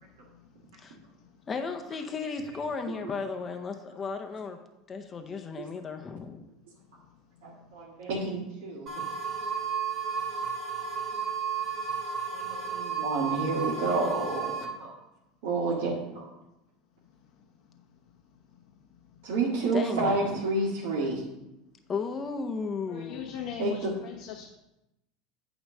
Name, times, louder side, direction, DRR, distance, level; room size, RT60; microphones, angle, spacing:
voice 1, 1.5-4.6 4.9-6.4 19.7-20.4 21.9-23.2, left 5 dB, 30° left, 5 dB, 0.7 m, -34 dB
voice 2, 7.4-9.0 12.3-14.9 15.4-16.2 19.2-21.2 23.6-23.9, right 3 dB, 75° right, -6 dB, 1.7 m, -30 dB
sound 1, 8.9-14.6, right 6 dB, 45° right, 2.4 m, -33 dB
voice 3, 22.9-24.6, left 9 dB, 70° left, -1 dB, 0.9 m, -39 dB
8.7 x 3.1 x 6.3 m, 0.92 s
supercardioid pair, 105°, 0 cm